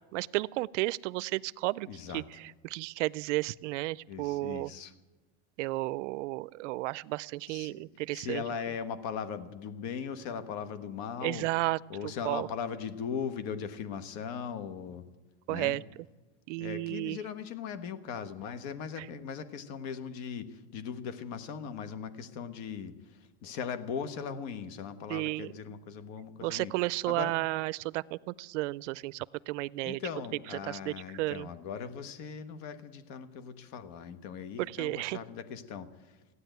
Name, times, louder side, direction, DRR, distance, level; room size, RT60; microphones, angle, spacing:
voice 1, 0.1-1.9 2.1-4.7 5.6-8.4 11.2-11.8 12.2-12.5 15.5-15.8 16.5-17.2 19.0-19.1 25.1-25.8 26.4-30.0 30.5-31.5 34.6-35.2, right 20 dB, 85° right, 21 dB, 0.5 m, -33 dB
voice 2, 1.9-2.2 4.1-4.9 7.5-7.9 8.1-11.5 11.9-15.0 15.5-15.8 16.6-26.7 27.1-27.3 29.8-36.2, left 7 dB, 50° left, 12 dB, 1.3 m, -39 dB
15.5 x 9.7 x 9.1 m, 1.2 s
supercardioid pair, 145°, 36 cm